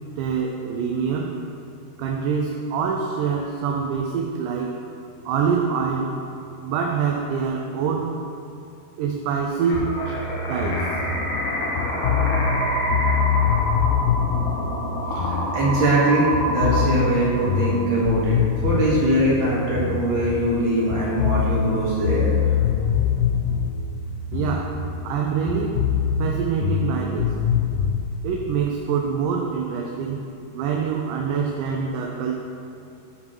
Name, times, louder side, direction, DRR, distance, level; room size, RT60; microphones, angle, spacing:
voice 1, 0.2-1.4 2.0-4.8 5.3-6.2 6.6-8.2 9.0-10.2 10.5-10.9 24.3-25.9 26.2-27.3 28.2-30.2 30.5-32.4, right 6 dB, 80° right, 1 dB, 1.9 m, -25 dB
sound 1, 9.6-18.1, right 1 dB, 60° left, 2.4 m, -27 dB
sound 2, 9.7-16.0 16.3-20.6 20.9-25.2 25.5-28.0, left 7 dB, 80° left, 2.1 m, -24 dB
voice 2, 15.1-23.0, right 1 dB, 45° right, -7 dB, 1.9 m, -22 dB
7.3 x 4.7 x 5.3 m, 2.7 s
omnidirectional pair, 4.1 m